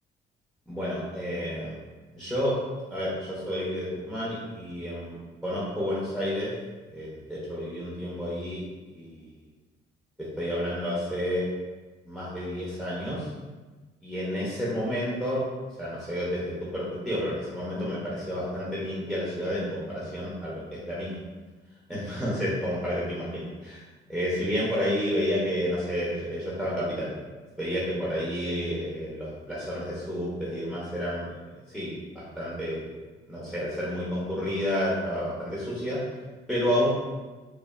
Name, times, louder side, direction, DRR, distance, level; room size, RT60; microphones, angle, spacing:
voice 1, 0.7-1.8 2.1-2.6 2.9-5.2 5.4-6.5 6.9-8.6 8.9-9.1 10.2-11.5 12.1-13.3 14.0-15.4 15.8-21.2 21.9-23.8 24.1-27.1 27.6-31.5 31.7-32.8 33.3-36.0 36.5-36.9, equal, ahead, -8 dB, 0.6 m, -30 dB
3.1 x 2.3 x 2.3 m, 1.3 s
cardioid pair, 90°, 20 cm